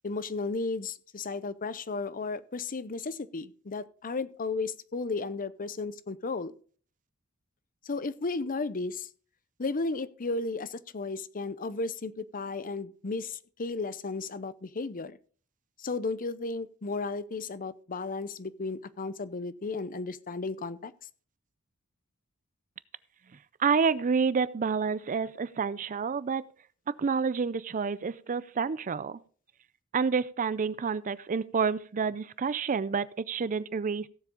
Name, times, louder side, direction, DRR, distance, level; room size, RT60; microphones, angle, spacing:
voice 1, 0.0-6.5 7.8-9.1 9.6-15.2 15.8-20.9, left 3 dB, 40° left, 15 dB, 0.7 m, -34 dB
voice 2, 23.6-26.5 27.0-29.2 29.9-34.1, right 5 dB, 35° right, 18 dB, 0.4 m, -29 dB
16.5 x 7.4 x 3.7 m, 0.43 s
head